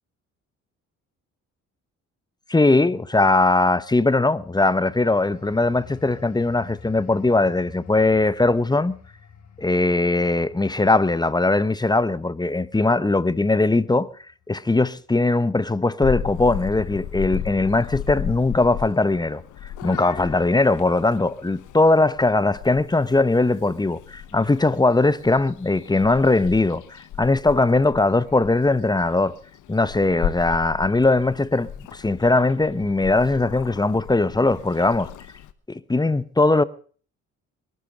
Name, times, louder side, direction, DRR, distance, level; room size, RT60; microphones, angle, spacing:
voice 1, 2.5-9.0 9.6-14.1 14.5-19.4 19.8-29.3 29.7-35.1 35.7-36.6, left 2 dB, 15° left, 0.9 m, -20 dB
sound 1, 4.7-15.1 15.5-15.8, left 7 dB, 65° left, 6.2 m, -48 dB
Purr / Meow, 16.0-35.5, left 10 dB, 80° left, 1.2 m, -35 dB
22.0 x 12.5 x 4.9 m
cardioid pair, 90°, 30 cm